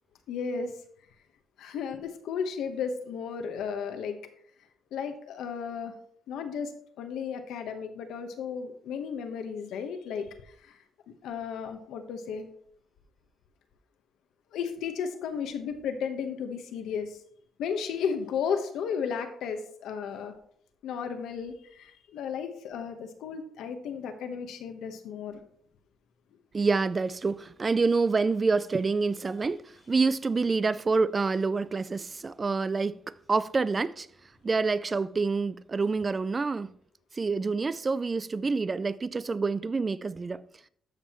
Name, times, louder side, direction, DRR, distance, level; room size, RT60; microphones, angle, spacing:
voice 1, 0.3-0.7 1.6-4.2 4.9-5.9 6.3-10.8 11.2-12.5 14.5-17.2 17.6-20.3 20.8-25.4, left 6 dB, 80° left, 1.1 m, -34 dB
voice 2, 26.5-33.0 33.3-34.1 34.4-36.7 37.1-40.4, right 4 dB, 30° right, 0.3 m, -27 dB
13.5 x 5.5 x 3.0 m
cardioid pair, 90°, 0 cm